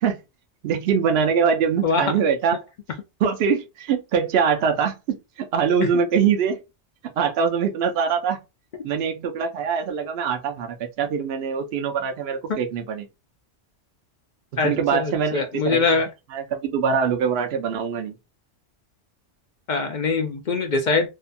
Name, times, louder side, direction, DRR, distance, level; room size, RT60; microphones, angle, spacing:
voice 1, 0.6-2.6 3.2-6.6 7.2-8.4 8.8-13.1 14.6-15.9 16.3-18.1, right 6 dB, 65° right, 0.8 m, -23 dB
voice 2, 14.6-16.1 19.7-21.1, left 4 dB, 60° left, 0.5 m, -23 dB
2.7 x 2.2 x 2.5 m
omnidirectional pair, 1.2 m